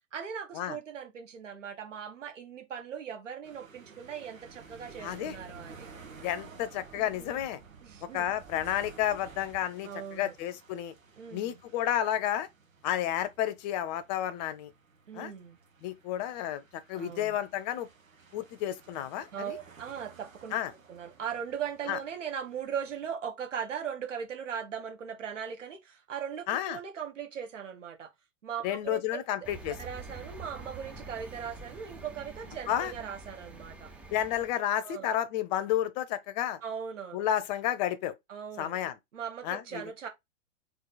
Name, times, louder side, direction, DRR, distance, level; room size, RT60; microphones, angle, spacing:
voice 1, 0.0-5.9 6.9-7.4 7.8-8.3 9.8-10.3 11.2-11.6 15.1-15.6 16.9-17.4 19.3-20.5 20.9-28.1 28.4-29.2 29.7-33.9 34.8-35.2 36.6-37.2 38.3-38.8 39.1-40.1, right 8 dB, 65° right, 1.6 m, -39 dB
sound 1, 3.4-23.1, right 4 dB, 85° right, 1.1 m, -55 dB
sound 2, 4.4-9.7, right 6 dB, 30° right, 1.1 m, -53 dB
voice 2, 5.0-5.3 6.2-7.6 8.1-10.9 11.3-12.5 12.8-14.7 15.1-15.3 15.8-17.9 18.3-19.6 20.5-20.7 21.9-22.0 26.5-26.8 28.6-29.7 32.7-32.9 34.1-36.6 37.1-38.1 38.6-38.9 39.4-39.8, left 11 dB, 35° left, 0.7 m, -31 dB
sound 3, 29.4-34.5, right 3 dB, 5° right, 0.5 m, -46 dB
3.9 x 2.6 x 3.9 m
figure-of-eight pair, 105°, 39 cm